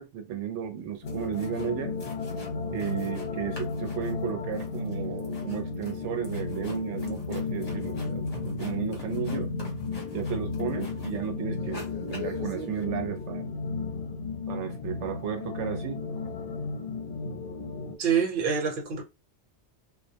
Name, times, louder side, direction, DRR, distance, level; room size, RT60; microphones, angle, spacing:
voice 1, 0.1-2.0 2.7-9.5 10.1-13.5 14.5-16.0, right 9 dB, 90° right, 0.9 m, -34 dB
sound 1, 0.8-0.9 1.1-1.7 2.0-3.3 3.5-11.3 11.6-12.8, left 3 dB, 35° left, 0.9 m, -45 dB
sound 2, 1.0-18.0, left 4 dB, 60° left, 0.8 m, -34 dB
voice 2, 18.0-19.0, right 7 dB, 50° right, 0.9 m, -26 dB
2.3 x 2.0 x 2.7 m
omnidirectional pair, 1.2 m